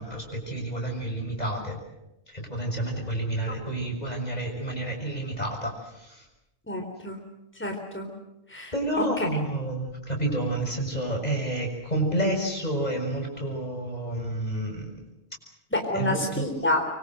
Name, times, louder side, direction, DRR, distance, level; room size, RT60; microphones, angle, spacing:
voice 1, 0.0-1.8 2.3-6.2 8.7-15.0 15.9-16.5, right 1 dB, 35° left, 2 dB, 6.7 m, -30 dB
voice 2, 6.7-7.2 7.6-8.1 8.5-9.0 15.7-16.8, left 1 dB, 10° left, 3 dB, 3.8 m, -28 dB
25.0 x 24.5 x 7.9 m, 0.90 s
omnidirectional pair, 1.3 m